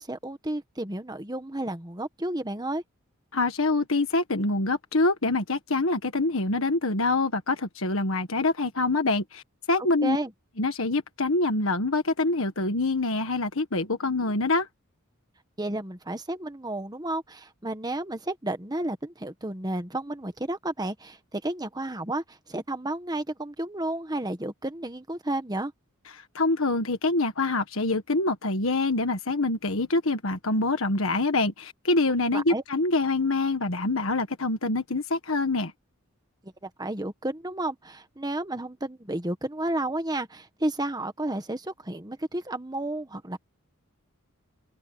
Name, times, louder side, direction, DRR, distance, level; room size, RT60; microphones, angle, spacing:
voice 1, 0.0-2.8 9.8-10.3 15.6-25.7 32.3-32.6 36.4-43.4, right 1 dB, 20° right, 1.5 m, -32 dB
voice 2, 3.3-10.2 10.6-14.7 26.3-35.7, left 2 dB, 70° left, 1.6 m, -25 dB
open air
head